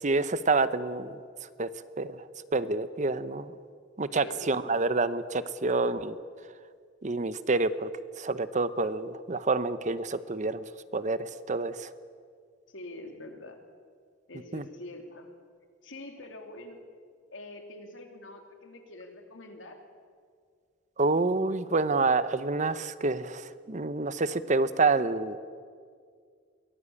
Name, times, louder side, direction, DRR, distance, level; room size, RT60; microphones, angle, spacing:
voice 1, 0.0-1.2 1.6-1.7 2.0-2.2 2.5-3.5 4.0-6.2 7.0-7.9 8.2-10.6 10.9-11.9 14.5-14.6 21.0-25.4, right 3 dB, 40° right, 14 dB, 0.8 m, -28 dB
voice 2, 4.1-4.5 12.7-13.6 14.3-15.3 15.8-16.8 17.3-19.8, left 2 dB, 90° left, 4 dB, 3.0 m, -45 dB
23.0 x 18.0 x 8.6 m, 2.1 s
head